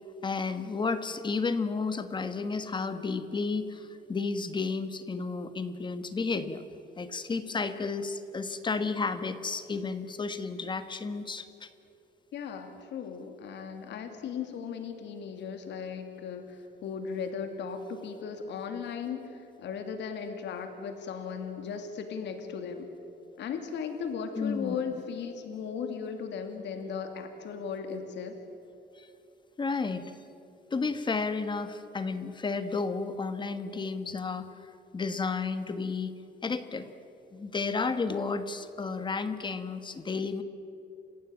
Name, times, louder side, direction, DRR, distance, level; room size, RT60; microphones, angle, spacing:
voice 1, 0.2-6.6 7.0-11.7 24.3-24.7 29.0-29.1 29.6-30.1 30.7-34.5 34.9-36.1 36.4-36.9 37.3-40.4, left 4 dB, 25° left, 10 dB, 1.4 m, -32 dB
voice 2, 12.3-19.3 19.6-22.9 23.4-28.3, left 6 dB, 70° left, 6 dB, 2.6 m, -37 dB
29.5 x 16.0 x 9.1 m, 2.8 s
cardioid pair, 145°, 19 cm